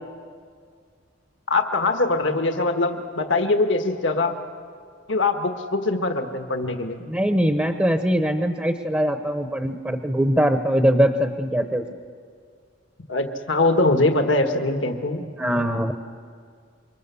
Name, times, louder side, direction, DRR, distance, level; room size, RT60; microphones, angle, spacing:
voice 1, 1.5-4.4 5.1-7.0 13.1-15.2, left 2 dB, 75° left, 5 dB, 1.6 m, -22 dB
voice 2, 7.1-11.9 15.4-15.9, equal, 10° right, 6 dB, 0.9 m, -22 dB
28.0 x 24.5 x 7.0 m, 2.1 s
head